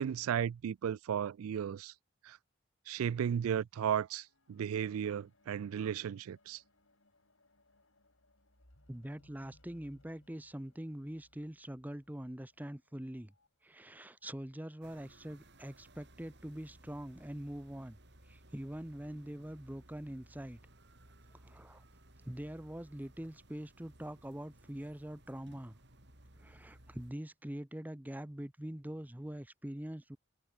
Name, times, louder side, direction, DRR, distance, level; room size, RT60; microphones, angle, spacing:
voice 1, 0.0-1.9 2.2-2.4 2.9-6.6, right 8 dB, 85° right, 0.3 m, -34 dB
sound 1, 4.0-13.5 14.3-14.4, left 1 dB, 65° left, 6.4 m, -68 dB
voice 2, 8.9-13.3 13.6-18.0 18.2-20.6 21.4-21.8 22.2-25.8 26.4-30.2, right 1 dB, 10° right, 0.7 m, -44 dB
sound 2, 14.8-27.1, right 1 dB, 55° right, 5.7 m, -60 dB
head